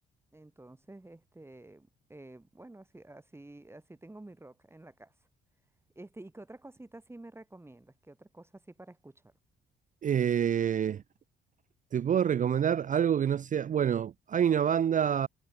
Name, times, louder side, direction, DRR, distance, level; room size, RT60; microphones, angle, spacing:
voice 1, 0.3-5.2 6.0-9.3, right 2 dB, 10° right, 2.1 m, -50 dB
voice 2, 10.0-11.0 11.9-15.3, right 9 dB, 40° right, 0.5 m, -27 dB
cardioid pair, 90°, 20 cm